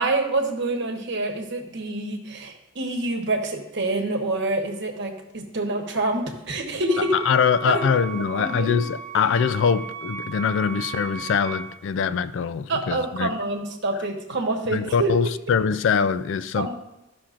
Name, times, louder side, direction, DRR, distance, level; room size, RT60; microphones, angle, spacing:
voice 1, 0.0-7.1 7.6-7.8 8.2-8.7 12.7-15.2 16.6-16.7, right 2 dB, 55° right, 1.1 m, -26 dB
Wind instrument woodwind instrument, 6.8-11.8, right 7 dB, 15° left, 0.9 m, -36 dB
voice 2, 7.3-13.3 14.7-16.7, left 6 dB, 60° left, 0.3 m, -23 dB
14.0 x 5.8 x 2.5 m
head